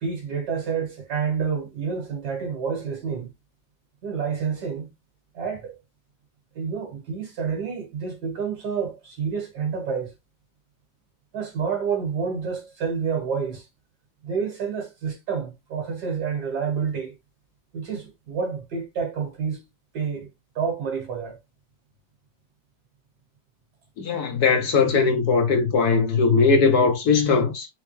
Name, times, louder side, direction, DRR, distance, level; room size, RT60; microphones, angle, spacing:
voice 1, 0.0-3.3 4.0-4.9 5.3-5.8 6.6-10.1 11.3-13.7 14.2-17.1 17.7-19.6 19.9-20.3 20.6-21.4, right 6 dB, 60° right, 2.1 m, -28 dB
voice 2, 24.0-27.7, left 4 dB, 60° left, 1.3 m, -20 dB
4.6 x 3.6 x 3.1 m
omnidirectional pair, 2.0 m